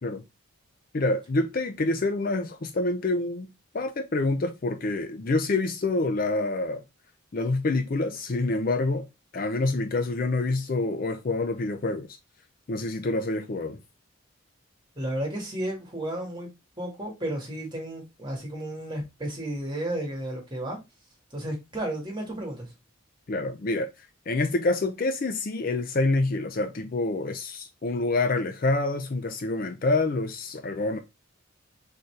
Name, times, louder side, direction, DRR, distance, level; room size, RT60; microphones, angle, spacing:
voice 1, 0.9-3.5 3.7-6.8 7.3-9.1 9.3-12.1 12.7-13.8 23.3-23.9 24.3-31.0, left 2 dB, 40° left, 0.5 m, -27 dB
voice 2, 14.9-16.5 16.8-20.8 21.3-22.7, right 1 dB, 20° right, 1.8 m, -33 dB
4.1 x 4.0 x 3.2 m
head